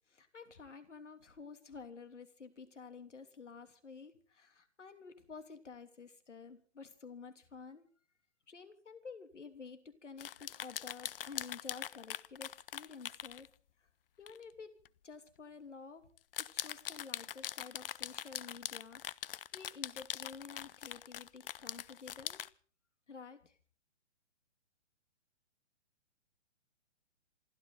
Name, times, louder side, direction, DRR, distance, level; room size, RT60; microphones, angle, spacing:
voice 1, 0.1-7.9 8.5-13.5 13.8-13.9 14.2-14.7 15.0-16.1 16.4-19.0 19.5-22.4 23.1-23.6, left 5 dB, 85° left, 9 dB, 3.1 m, -51 dB
sound 1, 10.2-13.5 14.3-14.4 14.9-15.0 16.2-22.5, left 11 dB, 50° left, 0.7 m, -42 dB
28.0 x 12.5 x 4.0 m, 0.42 s
hypercardioid pair, 140°, 35 cm